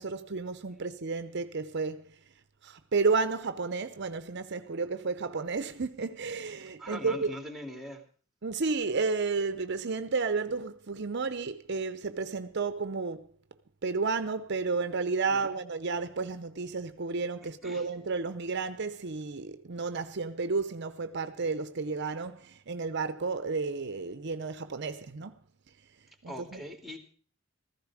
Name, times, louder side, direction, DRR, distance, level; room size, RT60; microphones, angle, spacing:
voice 1, 0.0-2.1 2.6-7.4 8.4-13.3 13.8-25.3 26.2-26.6, right 4 dB, 55° right, 0.7 m, -32 dB
voice 2, 6.8-8.0 15.3-15.6 17.4-17.9 26.3-27.0, equal, ahead, 2.7 m, -42 dB
15.5 x 14.5 x 4.9 m
head